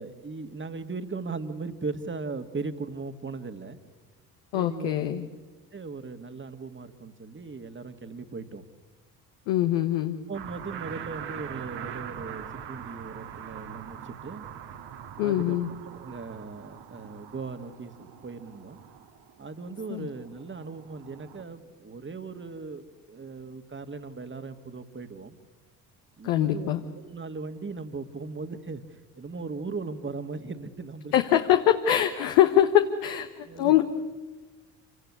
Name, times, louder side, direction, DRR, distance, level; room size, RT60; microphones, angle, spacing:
voice 1, 0.0-3.8 4.5-4.9 5.7-8.6 10.3-14.4 15.2-15.6 15.9-18.8 19.4-25.4 26.2-28.8 29.2-31.1 33.4-33.8, right 4 dB, 25° right, 9 dB, 2.0 m, -38 dB
voice 2, 4.5-5.3 9.5-10.2 15.2-15.7 19.9-20.1 26.2-26.8 31.1-33.8, left 11 dB, 70° left, 7 dB, 1.4 m, -23 dB
sound 1, 10.3-21.4, right 9 dB, 55° right, 2.0 m, -42 dB
28.0 x 17.5 x 9.7 m, 1.2 s
hypercardioid pair, 55°, 48 cm